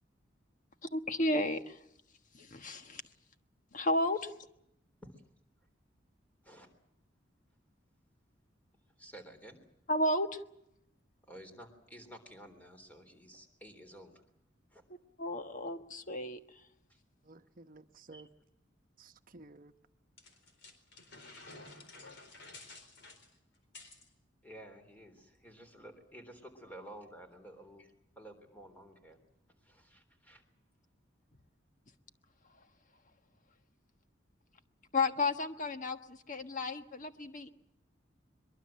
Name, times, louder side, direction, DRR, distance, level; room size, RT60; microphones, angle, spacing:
voice 1, 0.9-1.8 2.3-3.0 3.7-4.3 9.9-10.4 15.2-16.4 34.9-37.5, left 2 dB, 45° left, 1.4 m, -32 dB
voice 2, 9.0-9.6 11.2-14.2 14.7-14.8 16.9-17.0 18.1-18.2 24.4-29.2 29.6-30.4, right 1 dB, 10° left, 3.6 m, -52 dB
voice 3, 17.2-18.3 19.0-19.7, right 2 dB, 50° right, 1.0 m, -54 dB
sound 1, 20.2-24.1, left 3 dB, 65° left, 4.2 m, -52 dB
23.0 x 22.5 x 7.5 m
head